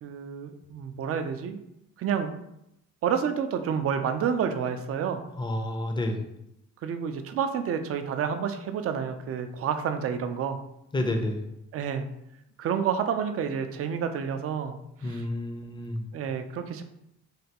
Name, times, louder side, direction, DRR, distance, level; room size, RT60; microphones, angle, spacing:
voice 1, 0.0-1.6 2.0-2.4 3.0-5.2 6.8-10.6 11.7-12.1 12.6-15.3 16.1-16.8, right 7 dB, 50° right, 8 dB, 0.4 m, -29 dB
voice 2, 5.4-6.2 10.9-11.4 15.0-16.0, left 1 dB, 15° left, 4 dB, 0.5 m, -29 dB
3.3 x 2.2 x 2.8 m, 0.82 s
cardioid pair, 90°, 30 cm